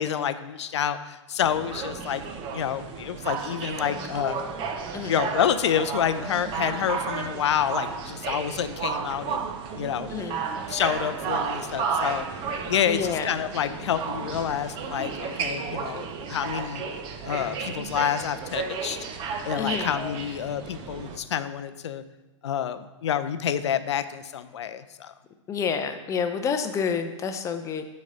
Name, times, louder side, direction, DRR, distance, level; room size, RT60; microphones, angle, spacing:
voice 1, 0.0-2.2 2.5-4.4 5.1-10.1 10.7-12.3 12.6-16.8 17.2-19.1 19.4-22.0 22.4-25.1, left 9 dB, 60° left, 12 dB, 0.5 m, -28 dB
sound 1, 1.4-21.2, right 5 dB, 30° right, 0.7 m, -33 dB
voice 2, 10.1-10.4 12.9-13.3 19.6-19.9 25.5-27.9, left 6 dB, 20° left, 7 dB, 0.6 m, -28 dB
7.2 x 4.2 x 5.2 m, 1.1 s
figure-of-eight pair, 105°, 16 cm